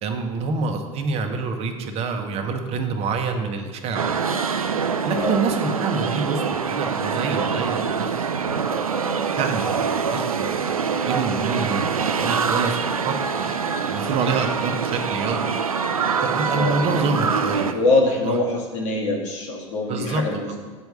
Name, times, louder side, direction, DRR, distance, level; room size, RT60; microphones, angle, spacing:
voice 1, 0.0-4.2 5.1-8.5 9.4-10.5 11.0-15.5 16.2-17.8 18.2-18.4 19.9-20.2, right 4 dB, 35° right, 5 dB, 1.0 m, -27 dB
sound 1, 3.9-17.7, right 6 dB, 85° right, 0.4 m, -24 dB
voice 2, 5.1-5.4 16.5-17.0 17.6-20.6, left 2 dB, 60° left, 0 dB, 1.6 m, -24 dB
8.1 x 4.6 x 6.7 m, 1.5 s
figure-of-eight pair, 80°, 18 cm